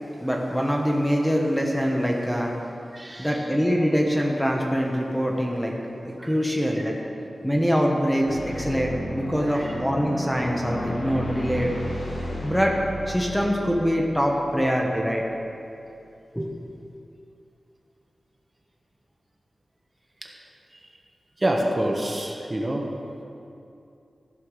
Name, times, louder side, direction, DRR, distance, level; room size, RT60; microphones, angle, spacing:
voice 1, 0.2-2.5 3.2-11.7 12.1-12.2 12.4-12.7 13.1-15.2 16.3-16.5, equal, ahead, 0 dB, 1.1 m, -24 dB
voice 2, 2.9-3.4 6.2-6.3 6.8-6.9 9.5-9.8 20.2-20.3 21.4-22.9, right 1 dB, 25° right, 0 dB, 1.2 m, -27 dB
sound 1, 8.3-14.9, equal, 60° left, 2.1 m, -33 dB
14.5 x 5.7 x 6.5 m, 2.6 s
wide cardioid pair, 115°, 0 cm